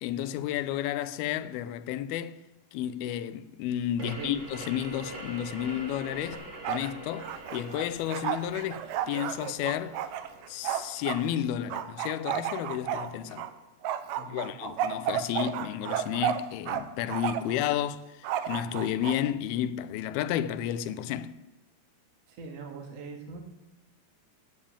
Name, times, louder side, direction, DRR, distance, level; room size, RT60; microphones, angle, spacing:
voice 1, 0.0-2.4 2.7-10.0 10.5-13.5 14.3-21.4, left 11 dB, 85° left, 2.6 m, -32 dB
sound 1, 4.0-13.3, right 1 dB, 30° right, 1.6 m, -45 dB
voice 2, 4.0-4.3 14.2-14.5 22.3-23.4, right 3 dB, 50° right, 2.6 m, -41 dB
Bark, 6.3-6.9 7.2-11.2 11.7-13.5 13.8-16.8 17.1-17.6 18.2-19.2, right 10 dB, 75° right, 2.2 m, -32 dB
15.0 x 5.4 x 8.7 m
omnidirectional pair, 4.3 m